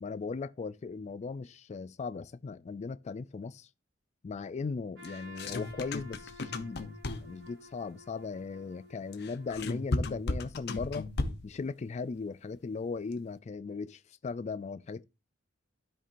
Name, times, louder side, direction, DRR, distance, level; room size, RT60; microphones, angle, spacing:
voice 1, 0.0-3.7 4.2-6.9 7.2-11.1 11.4-15.0, left 4 dB, 35° left, 0.3 m, -38 dB
Trumpet, 4.9-10.0, left 1 dB, 65° right, 4.9 m, -53 dB
sound 1, 5.0-7.5 9.1-11.6, left 2 dB, 55° left, 0.8 m, -35 dB
12.5 x 4.5 x 2.5 m
head